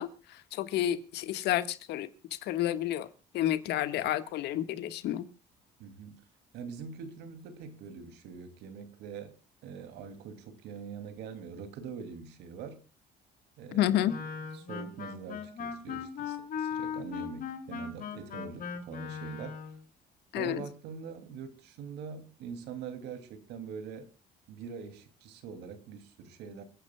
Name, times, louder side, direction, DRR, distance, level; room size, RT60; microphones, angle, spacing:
voice 1, 0.0-2.1 2.4-3.1 3.3-5.2 13.7-14.1 20.3-20.6, left 12 dB, 80° left, 1.5 m, -30 dB
voice 2, 5.8-6.2 6.5-9.4 9.6-12.8 13.6-14.3 14.5-19.6 20.4-24.1 24.5-26.6, right 6 dB, 85° right, 2.6 m, -43 dB
Wind instrument woodwind instrument, 14.0-19.8, left 7 dB, 55° left, 2.7 m, -38 dB
29.0 x 9.7 x 2.2 m
cardioid pair, 110°, 17 cm